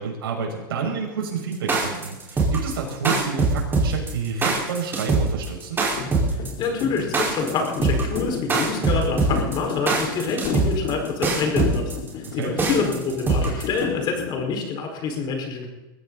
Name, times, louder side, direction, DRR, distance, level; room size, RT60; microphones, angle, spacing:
voice 1, 0.0-5.8 12.2-12.5, right 5 dB, 85° right, 0 dB, 6.3 m, -29 dB
sound 1, 1.5-13.8, right 3 dB, 15° right, 5.0 m, -22 dB
sound 2, 5.9-14.5, left 7 dB, 55° left, 3.8 m, -32 dB
voice 2, 6.6-15.7, left 4 dB, 35° left, 2 dB, 5.2 m, -27 dB
22.0 x 15.0 x 4.2 m, 1.1 s
supercardioid pair, 130°, 12 cm